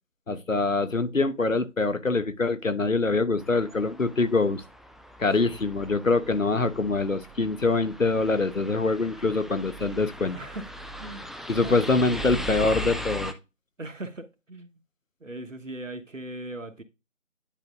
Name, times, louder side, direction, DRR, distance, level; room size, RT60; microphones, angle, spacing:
voice 1, 0.3-4.6 5.2-10.4 11.5-13.3, left 3 dB, 75° left, 1.1 m, -24 dB
sound 1, 3.4-13.3, left 1 dB, ahead, 0.4 m, -39 dB
voice 2, 10.3-10.7 11.0-11.3 11.6-11.8 12.1-12.5 13.8-14.8 15.2-16.8, right 2 dB, 70° right, 1.3 m, -39 dB
10.5 x 4.6 x 2.5 m
figure-of-eight pair, 175°, 40 cm